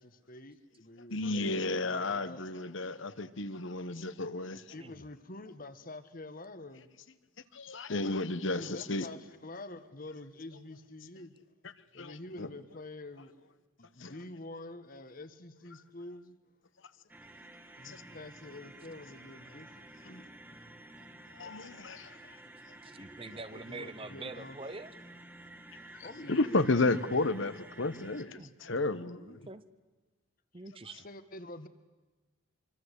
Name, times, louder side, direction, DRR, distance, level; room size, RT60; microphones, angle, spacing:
voice 1, 0.0-2.5 2.9-3.4 4.5-6.9 8.5-11.4 11.9-13.5 13.8-16.4 17.8-20.3 20.7-20.8 23.2-24.6 25.7-26.7 31.0-31.7, left 2 dB, 40° left, 1.5 m, -47 dB
voice 2, 1.1-4.6 7.5-9.1 12.0-12.5 14.0-14.1 17.8-18.0 21.3-22.2 26.0-29.5, left 2 dB, 60° left, 1.1 m, -32 dB
sound 1, 17.1-28.2, right 1 dB, 10° right, 1.8 m, -52 dB
voice 3, 22.8-24.9 28.4-28.5 29.2-29.6 30.5-31.1, right 3 dB, 25° right, 0.9 m, -45 dB
25.5 x 24.5 x 8.3 m
head